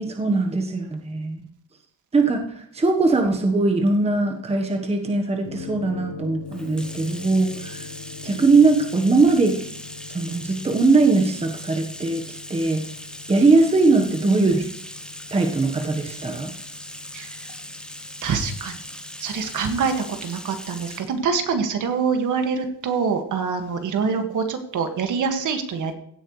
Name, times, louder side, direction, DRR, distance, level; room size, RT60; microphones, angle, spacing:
voice 1, 0.0-1.4 2.1-7.9 8.2-9.7 10.1-12.8 13.3-14.7 15.3-16.5 24.0-24.3, right 3 dB, 15° right, 3 dB, 1.2 m, -20 dB
sound 1, 5.5-20.0, left 6 dB, 70° left, 1.3 m, -42 dB
Bathtub (filling or washing), 6.5-21.1, left 1 dB, ahead, 0.9 m, -39 dB
voice 2, 17.1-17.5 18.2-18.8 19.2-19.9 20.2-25.9, right 5 dB, 55° right, 6 dB, 1.9 m, -25 dB
16.5 x 8.9 x 3.2 m, 0.69 s
cardioid pair, 125°, 37 cm